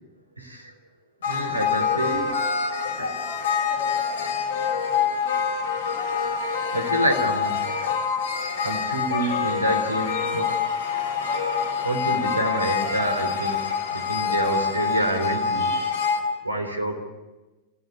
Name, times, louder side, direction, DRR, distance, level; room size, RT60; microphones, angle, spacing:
voice 1, 0.4-0.7 1.2-2.4 3.0-3.1 6.7-7.6 8.6-10.5 11.8-13.6 13.9-15.8 16.4-17.0, right 1 dB, 85° right, 5 dB, 3.7 m, -27 dB
sound 1, 1.2-16.2, left 6 dB, 60° left, 5.1 m, -26 dB
30.0 x 16.0 x 8.6 m, 1.2 s
figure-of-eight pair, 90°, 0 cm